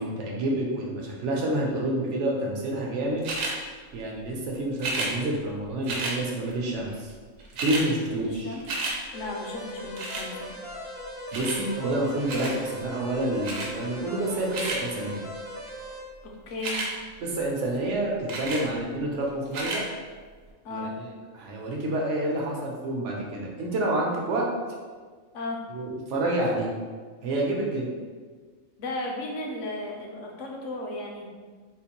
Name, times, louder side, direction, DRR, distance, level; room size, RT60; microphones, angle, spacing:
voice 1, 0.0-3.3 3.9-7.1 7.6-8.6 11.3-15.2 17.2-19.8 20.7-21.1 21.3-24.5 25.7-26.7 27.2-27.9, right 1 dB, 70° right, -2 dB, 1.0 m, -28 dB
sound 1, 3.2-3.6 4.8-5.1 5.8-6.2 7.1-7.2 7.4-7.9 8.2-9.0 10.0-10.3 11.3-11.6 12.3-12.6 13.4-13.7 14.3-14.8 16.5-16.9 18.3-18.6 19.5-19.8 20.5-20.6, right 2 dB, 85° right, 1.1 m, -31 dB
voice 2, 8.1-8.7 9.1-10.6 16.2-16.9 20.6-21.0 25.3-25.6 28.8-31.3, left 2 dB, 70° left, 0 dB, 1.0 m, -35 dB
sound 2, 9.1-16.0, left 1 dB, 35° left, 0.6 m, -39 dB
3.8 x 2.5 x 2.9 m, 1.5 s
omnidirectional pair, 1.3 m